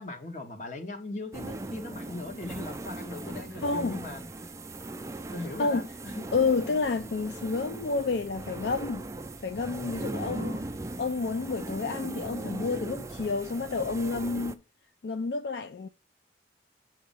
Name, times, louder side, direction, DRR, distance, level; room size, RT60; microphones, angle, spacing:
voice 1, 0.0-4.5 5.3-6.2 10.3-10.7, left 2 dB, 45° left, 1.3 m, -39 dB
sound 1, 1.3-14.6, right 2 dB, 15° right, 0.3 m, -39 dB
voice 2, 3.6-4.0 5.6-5.9 6.3-9.1 9.4-10.6 11.0-14.6 15.0-15.9, left 4 dB, 70° left, 0.4 m, -29 dB
7.3 x 2.9 x 5.3 m
head